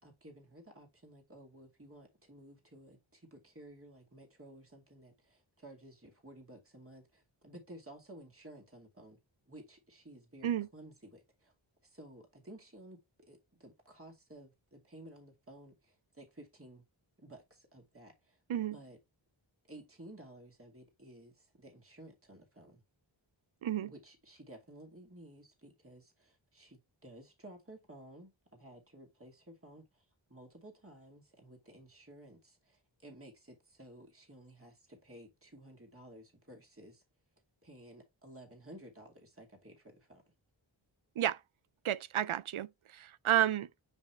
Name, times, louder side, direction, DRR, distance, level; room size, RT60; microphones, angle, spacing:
voice 1, 0.0-9.2 9.5-11.5 11.8-16.8 17.2-18.4 18.7-19.0 19.6-22.8 23.8-37.0 37.6-40.2, right 1 dB, 30° right, 2.5 m, -54 dB
voice 2, 41.8-42.7 42.9-43.7, right 11 dB, 85° right, 0.5 m, -31 dB
9.6 x 3.2 x 3.2 m
wide cardioid pair, 40°, 48 cm